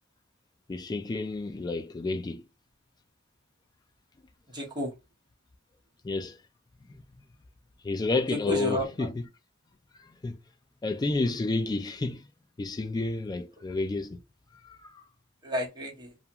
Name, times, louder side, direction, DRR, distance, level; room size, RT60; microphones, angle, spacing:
voice 1, 0.7-2.5 6.0-6.4 7.8-9.1 10.0-10.4 10.8-12.2 12.6-14.2 14.6-15.0, left 3 dB, 20° left, 0.3 m, -30 dB
voice 2, 4.5-5.0 8.3-9.1 15.4-16.2, equal, 20° right, 1.0 m, -32 dB
2.5 x 2.3 x 2.9 m
head